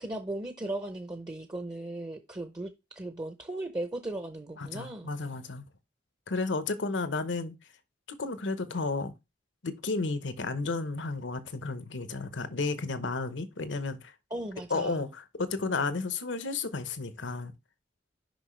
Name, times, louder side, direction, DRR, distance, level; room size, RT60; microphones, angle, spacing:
voice 1, 0.0-5.1 14.3-15.0, right 1 dB, 20° right, 0.6 m, -37 dB
voice 2, 4.6-5.6 6.3-7.5 8.2-9.1 9.6-14.1 14.7-17.5, left 3 dB, 75° left, 0.9 m, -32 dB
6.2 x 5.5 x 3.2 m
head